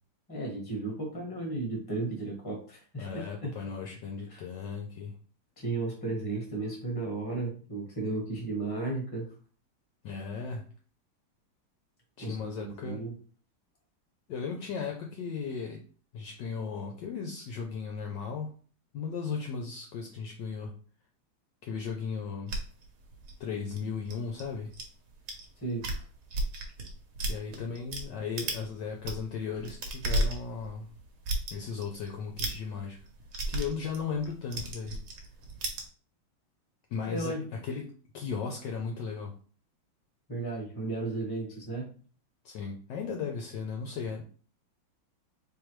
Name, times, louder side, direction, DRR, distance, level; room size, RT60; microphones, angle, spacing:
voice 1, 0.3-3.5 4.3-4.4 5.6-9.3 12.2-13.1 25.6-25.9 37.1-37.4 40.3-41.9, right 3 dB, 15° left, -1 dB, 1.1 m, -34 dB
voice 2, 3.0-5.1 10.0-10.7 12.2-13.1 14.3-15.8 16.1-18.5 18.9-20.7 21.6-22.5 23.4-24.7 27.3-30.9 31.5-33.0 33.5-35.0 36.9-39.3 42.4-44.2, left 5 dB, 70° left, 2 dB, 1.1 m, -36 dB
sound 1, 22.5-24.8 25.3-25.4 25.7-28.0 28.4-28.7 28.9-35.8, right 1 dB, 60° right, 1.2 m, -34 dB
3.7 x 3.1 x 3.0 m, 0.41 s
omnidirectional pair, 2.2 m